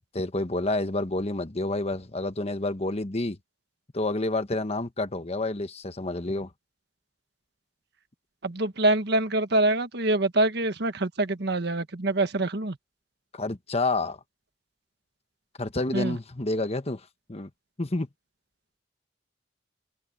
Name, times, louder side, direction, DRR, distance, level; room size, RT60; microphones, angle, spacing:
voice 1, 0.1-3.4 3.9-6.5 13.3-14.2 15.6-17.5 17.8-18.1, left 2 dB, 35° left, 1.3 m, -29 dB
voice 2, 8.4-12.8 15.9-16.2, right 2 dB, 65° right, 1.4 m, -25 dB
head